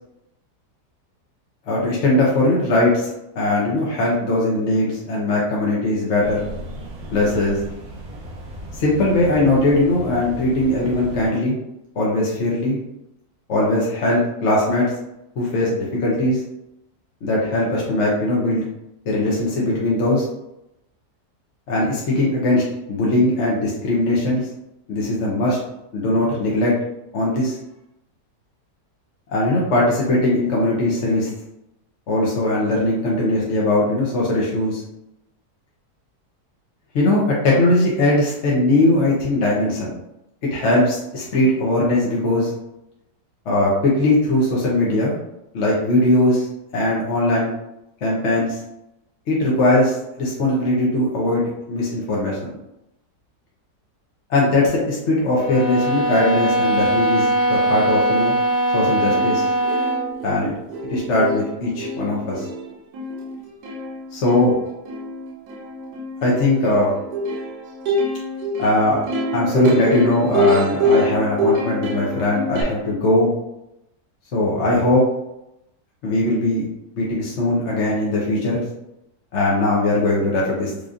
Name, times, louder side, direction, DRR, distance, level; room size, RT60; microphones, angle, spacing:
voice 1, 1.7-3.1 3.3-6.5 7.1-7.6 8.8-11.6 12.0-12.8 13.5-14.9 15.4-16.4 17.2-18.6 19.1-20.2 21.7-22.6 22.9-24.4 24.9-25.6 25.9-26.7 27.1-27.6 29.3-31.3 32.1-34.8 36.9-39.9 40.5-42.5 43.5-45.2 45.5-46.5 46.7-47.5 48.0-48.6 49.3-52.5 54.3-58.3 58.7-59.5 60.2-60.5 60.9-62.4 64.1-64.5 66.2-66.9 68.6-69.0 69.3-73.3 74.3-75.0 76.0-76.7 77.0-78.6 79.3-80.7, left 1 dB, 55° left, -4 dB, 0.9 m, -20 dB
sound 1, 6.2-11.3, equal, 50° right, 0.8 m, -36 dB
sound 2, 55.4-60.1, right 1 dB, 90° left, 0.3 m, -20 dB
Plucked string instrument, 58.7-58.8 59.1-72.6, equal, 75° right, 1.3 m, -25 dB
4.9 x 2.7 x 2.4 m, 0.87 s
omnidirectional pair, 1.8 m